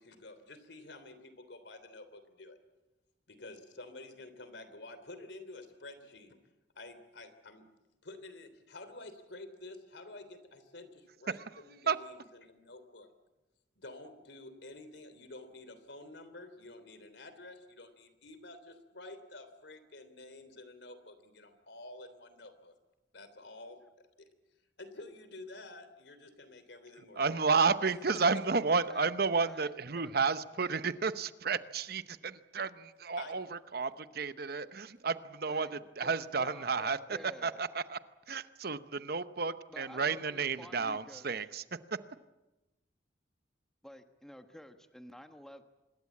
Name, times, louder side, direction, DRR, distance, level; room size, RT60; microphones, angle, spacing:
voice 1, 0.0-2.6 3.3-6.4 6.7-7.7 8.0-13.1 13.8-22.7 23.1-24.3 24.8-27.3 33.2-33.3, left 2 dB, 70° left, 11 dB, 3.3 m, -50 dB
voice 2, 27.2-38.0 38.3-41.6, right 5 dB, 55° right, 13 dB, 0.9 m, -32 dB
voice 3, 29.5-30.1 35.5-35.7 36.0-37.6 39.7-41.5 43.8-45.6, equal, 5° left, 7 dB, 1.3 m, -51 dB
26.0 x 21.5 x 8.5 m, 1.0 s
head